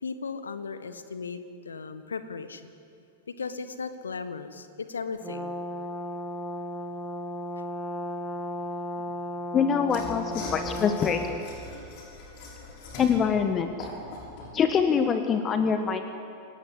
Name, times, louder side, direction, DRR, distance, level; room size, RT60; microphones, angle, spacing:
voice 1, 0.0-2.7 3.3-5.5 9.0-9.2 12.4-12.6, left 5 dB, 70° left, 11 dB, 1.5 m, -37 dB
Brass instrument, 5.2-11.5, left 1 dB, 5° right, 1.6 m, -35 dB
voice 2, 9.5-11.4 13.0-13.9 14.5-16.0, left 6 dB, 25° left, 7 dB, 1.4 m, -24 dB
Mechanisms / Sawing, 9.8-14.6, left 2 dB, 45° left, 6.9 m, -41 dB
29.0 x 18.5 x 8.2 m, 2.5 s
figure-of-eight pair, 90°, 0 cm